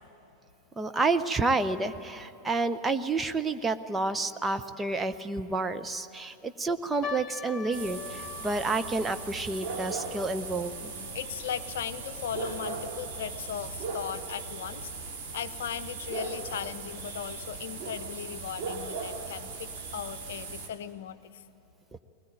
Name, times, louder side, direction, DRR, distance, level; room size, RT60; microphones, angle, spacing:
voice 1, 0.8-10.9, right 3 dB, 10° right, 9 dB, 0.8 m, -29 dB
sound 1, 7.0-13.5 13.8-13.9 14.6-14.9 15.5-15.6 16.0-16.1, left 6 dB, 30° left, 0.9 m, -44 dB
sound 2, 7.7-20.7, right 4 dB, 50° right, 3.0 m, -38 dB
voice 2, 10.9-21.4, left 9 dB, 60° left, 11 dB, 0.7 m, -38 dB
21.0 x 20.0 x 9.0 m, 2.9 s
figure-of-eight pair, 90°, 0 cm